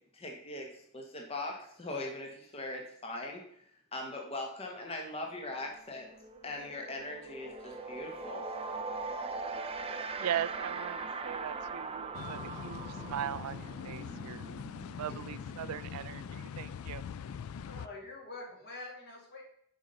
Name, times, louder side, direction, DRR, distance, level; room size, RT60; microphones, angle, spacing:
voice 1, 0.1-3.4 3.9-6.1 6.4-8.5, left 2 dB, 25° left, 1 dB, 0.9 m, -40 dB
sound 1, 5.4-5.6 5.9-16.5, right 4 dB, 25° right, 0.4 m, -41 dB
voice 2, 10.2-14.5 15.0-17.0, right 10 dB, 85° right, 15 dB, 0.3 m, -39 dB
sound 2, 12.1-17.9, left 7 dB, 70° left, 0.3 m, -43 dB
voice 3, 17.6-19.4, left 2 dB, 50° left, -2 dB, 2.1 m, -45 dB
7.1 x 5.4 x 3.8 m, 0.69 s
head